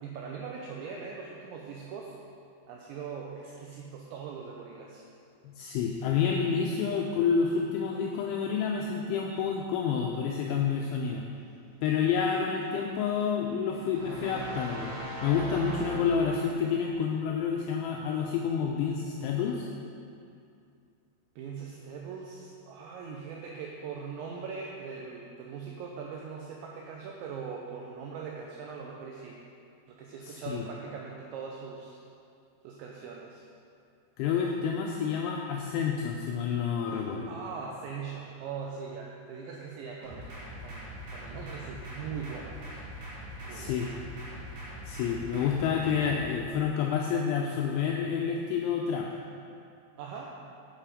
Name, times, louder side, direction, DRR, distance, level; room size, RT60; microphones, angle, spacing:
voice 1, 0.0-2.2 2.7-5.1 21.4-29.4 29.9-32.0 32.6-33.4 36.9-40.3 40.6-42.8 43.4-43.8 50.0-50.5, right 5 dB, 80° right, -1 dB, 2.6 m, -41 dB
voice 2, 5.6-11.2 11.8-14.9 15.2-19.7 30.2-30.7 34.2-37.4 43.5-43.9 44.8-49.1, left 6 dB, 85° left, 0 dB, 2.7 m, -29 dB
sound 1, 13.9-16.7, right 1 dB, 40° right, 1.4 m, -38 dB
sound 2, 40.0-46.2, equal, 60° right, 4.1 m, -42 dB
9.0 x 8.3 x 5.0 m, 2.5 s
omnidirectional pair, 5.9 m